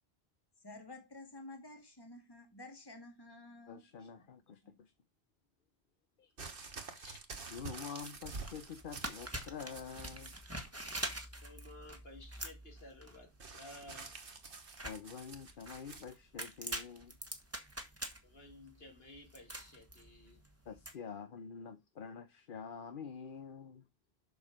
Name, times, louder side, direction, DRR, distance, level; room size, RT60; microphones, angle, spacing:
voice 1, 0.6-4.1 4.6-4.7, left 2 dB, 25° left, 1.9 m, -52 dB
voice 2, 3.7-4.9 6.2-6.3 7.5-10.4 14.8-17.2 20.7-23.8, left 6 dB, 60° left, 0.9 m, -47 dB
sound 1, 6.4-10.5 10.8-11.4 13.4-16.1 17.0-17.1, right 4 dB, 60° right, 1.6 m, -48 dB
sound 2, 8.4-20.9, right 1 dB, 15° right, 1.4 m, -45 dB
voice 3, 11.4-14.2 18.2-20.5, left 1 dB, 75° left, 3.0 m, -55 dB
6.9 x 6.3 x 5.1 m
omnidirectional pair, 1.0 m